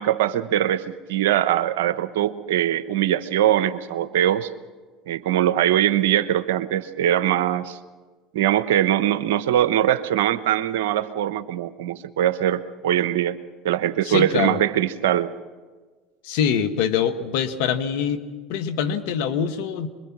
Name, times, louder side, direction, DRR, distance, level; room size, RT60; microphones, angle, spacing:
voice 1, 0.0-4.5 5.1-7.8 8.3-13.4 13.6-15.3, right 11 dB, 80° right, 13 dB, 0.9 m, -22 dB
voice 2, 14.0-14.6 16.2-18.2 18.5-19.9, left 8 dB, 75° left, 10 dB, 1.6 m, -24 dB
25.5 x 22.0 x 6.1 m, 1.4 s
hypercardioid pair, 85°, 0 cm